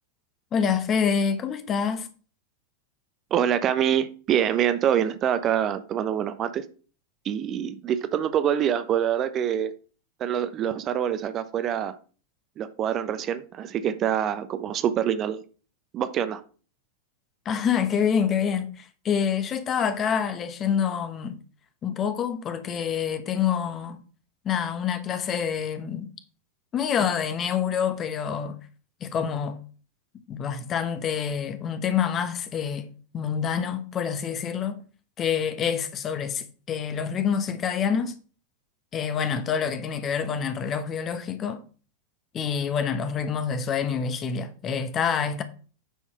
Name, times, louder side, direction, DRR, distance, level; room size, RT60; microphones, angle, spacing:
voice 1, 0.5-2.1 17.4-21.4 21.8-24.0 24.4-26.1 26.7-28.6 29.0-29.6 30.3-32.9 33.1-34.8 35.2-38.1 38.9-41.6 42.3-45.4, left 7 dB, 30° left, 1.3 m, -27 dB
voice 2, 3.3-6.6 7.2-9.7 10.2-12.0 12.6-15.4 15.9-16.4, right 9 dB, 30° right, 0.8 m, -25 dB
9.2 x 4.7 x 5.6 m
figure-of-eight pair, 90°, 0 cm